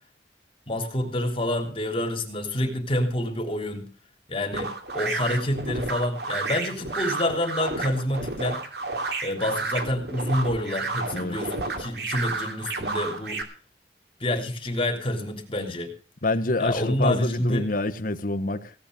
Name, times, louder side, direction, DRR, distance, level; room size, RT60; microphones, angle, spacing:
voice 1, 0.7-3.9 4.3-8.6 9.2-13.4 14.2-15.9 16.6-17.7, left 1 dB, 30° left, 3.3 m, -28 dB
sound 1, 4.5-13.4, right 3 dB, 65° right, 2.7 m, -31 dB
voice 2, 16.2-18.7, left 2 dB, 50° left, 1.2 m, -26 dB
17.5 x 9.0 x 6.8 m
head